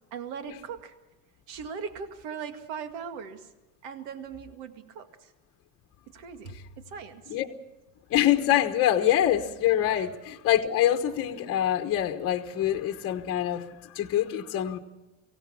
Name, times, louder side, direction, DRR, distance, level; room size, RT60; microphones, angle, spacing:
voice 1, 0.1-0.9 1.5-3.5 3.8-5.3 6.1-7.4 10.0-10.1, right 6 dB, 75° right, 8 dB, 2.2 m, -39 dB
voice 2, 8.1-14.8, left 11 dB, 30° left, 5 dB, 1.2 m, -25 dB
24.0 x 17.0 x 7.2 m, 1.1 s
cardioid pair, 180°, 44 cm